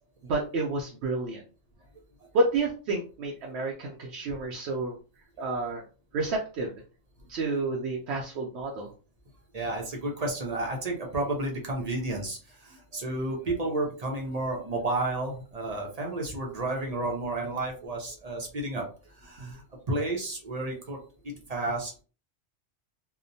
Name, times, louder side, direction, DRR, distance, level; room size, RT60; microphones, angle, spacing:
voice 1, 0.2-1.4 2.3-5.0 5.4-5.8 6.1-6.7 7.3-8.9 19.4-19.5, right 2 dB, 75° right, 0 dB, 0.8 m, -30 dB
voice 2, 9.5-19.6 19.9-21.0 21.2-21.9, right 2 dB, 45° right, 0 dB, 0.6 m, -31 dB
2.7 x 2.0 x 2.6 m, 0.37 s
omnidirectional pair, 1.2 m